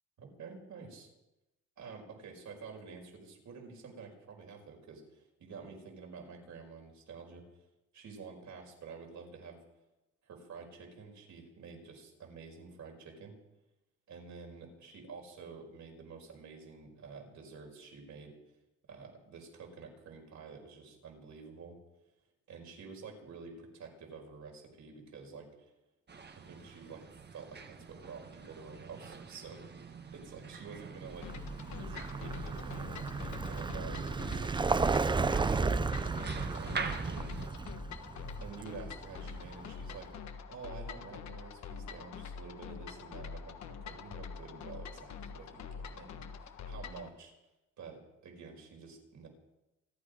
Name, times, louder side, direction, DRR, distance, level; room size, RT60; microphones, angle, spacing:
voice 1, 0.2-1.1 1.8-7.4 7.9-9.6 10.2-13.4 14.1-18.3 18.9-21.8 22.5-25.5 26.3-27.0 27.3-31.3 31.7-37.5 38.4-40.1 40.5-47.3 47.8-49.3, right 5 dB, 70° right, 1 dB, 5.2 m, -49 dB
sound 1, 26.1-37.5, right 5 dB, 35° right, 1.3 m, -43 dB
sound 2, 31.2-47.1, left 6 dB, 65° left, 1.4 m, -45 dB
Vehicle, 31.2-40.0, right 4 dB, 15° right, 0.5 m, -34 dB
28.0 x 9.9 x 5.1 m, 0.97 s
cardioid pair, 90°, 30 cm